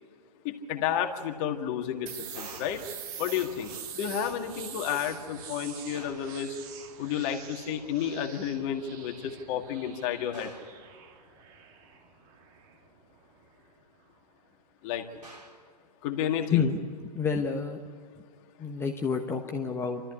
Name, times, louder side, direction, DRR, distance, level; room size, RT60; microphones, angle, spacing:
voice 1, 0.4-2.8 3.2-6.6 7.0-10.5 14.8-15.2 16.0-16.6, left 9 dB, 30° left, 5 dB, 2.0 m, -31 dB
sound 1, 2.1-13.7, right 8 dB, 30° right, 1.6 m, -45 dB
sound 2, 2.3-2.9 5.9-6.4 10.3-10.8 15.2-15.7, right 1 dB, 85° right, 4.6 m, -48 dB
voice 2, 17.1-17.8 18.6-20.0, left 6 dB, 10° left, 3 dB, 1.2 m, -28 dB
28.0 x 13.5 x 9.7 m, 2.2 s
figure-of-eight pair, 115°, 20 cm